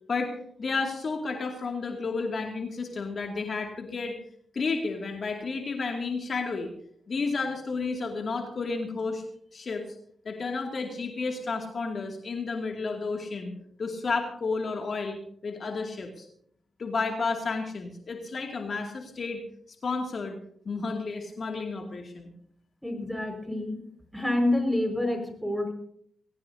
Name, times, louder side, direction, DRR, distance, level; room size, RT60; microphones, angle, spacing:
voice 1, 0.1-4.2 4.5-6.7 7.1-9.2 9.5-9.8 10.2-13.5 13.8-16.3 16.8-19.4 19.8-20.4 20.7-22.3, left 4 dB, 55° left, 2 dB, 2.4 m, -31 dB
voice 2, 22.8-23.8 24.1-25.7, left 1 dB, ahead, 4 dB, 5.2 m, -27 dB
21.0 x 17.0 x 2.8 m, 0.65 s
supercardioid pair, 55°, 0 cm